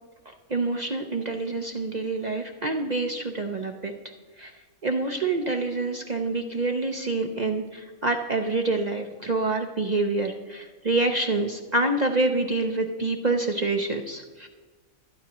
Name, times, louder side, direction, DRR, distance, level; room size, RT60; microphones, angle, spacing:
voice 1, 0.5-3.9 4.4-4.5 4.8-14.5, right 2 dB, 45° right, 3 dB, 0.6 m, -27 dB
23.5 x 9.5 x 3.0 m, 1.3 s
omnidirectional pair, 1.5 m